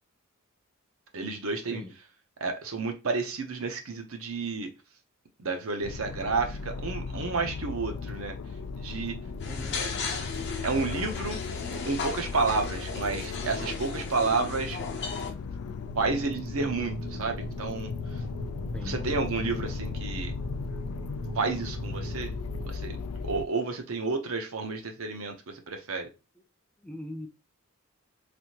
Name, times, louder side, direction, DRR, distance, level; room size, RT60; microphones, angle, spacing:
voice 1, 1.1-1.8 2.4-4.7 5.4-8.3 8.7-9.2 10.6-11.4 11.8-14.8 15.9-18.2 18.7-20.3 21.3-22.3 22.7-23.0 23.2-26.1, right 4 dB, 70° right, 0.7 m, -31 dB
sound 1, 5.8-23.5, left 4 dB, 85° left, 0.3 m, -36 dB
sound 2, 9.4-15.3, left 4 dB, 55° left, 0.7 m, -36 dB
voice 2, 9.4-9.8 18.7-19.0 26.8-27.3, left 1 dB, 5° left, 0.3 m, -40 dB
sound 3, 15.8-22.7, right 1 dB, 90° right, 1.8 m, -41 dB
3.4 x 2.6 x 2.8 m
head